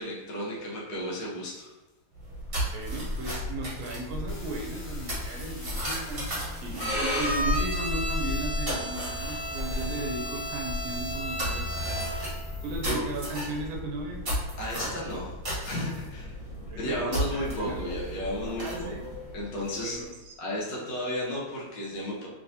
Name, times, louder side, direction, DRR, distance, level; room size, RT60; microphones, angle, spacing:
voice 1, 0.0-1.7 12.8-13.0 14.6-15.3 15.6-16.3 16.8-18.9 19.3-20.0 20.4-22.3, left 1 dB, 65° left, -4 dB, 1.4 m, -33 dB
sound 1, 2.1-20.1, left 1 dB, 35° right, 1.1 m, -34 dB
voice 2, 2.7-6.3 6.6-12.1 12.6-14.3 16.7-17.8 18.6-19.1 19.8-20.3, right 2 dB, 85° right, 1 dB, 1.5 m, -36 dB
sound 2, 4.3-12.9, left 1 dB, 90° left, 1.7 m, -46 dB
Bowed string instrument, 6.8-12.4, equal, 50° left, 1.6 m, -33 dB
3.4 x 3.2 x 2.6 m, 1.1 s
omnidirectional pair, 2.2 m